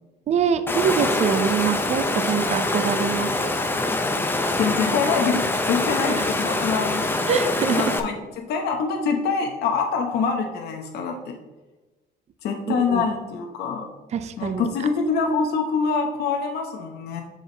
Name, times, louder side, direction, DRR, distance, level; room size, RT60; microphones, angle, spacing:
voice 1, 0.3-3.5 6.2-6.3 7.3-7.9 12.7-13.1 14.1-14.7, right 7 dB, 40° right, 10 dB, 0.5 m, -24 dB
Water, 0.7-8.0, left 2 dB, 10° left, 0.7 m, -24 dB
voice 2, 4.6-7.3 7.7-8.1 8.4-11.4 12.4-13.9 14.4-17.2, left 5 dB, 75° left, 2 dB, 0.9 m, -25 dB
7.1 x 4.9 x 3.9 m, 1.2 s
cardioid pair, 110°, 17 cm